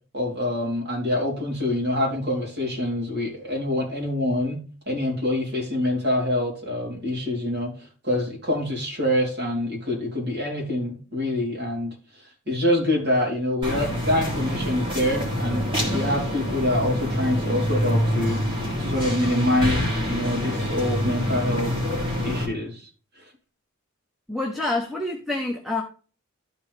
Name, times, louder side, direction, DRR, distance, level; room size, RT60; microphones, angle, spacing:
voice 1, 0.1-11.9 12.5-21.7 22.2-22.9, left 1 dB, 50° right, -2 dB, 3.6 m, -26 dB
sound 1, 13.6-22.5, equal, 25° right, 2.8 m, -26 dB
voice 2, 24.3-25.8, left 2 dB, ahead, 1 dB, 0.9 m, -27 dB
12.5 x 4.6 x 3.4 m, 0.38 s
head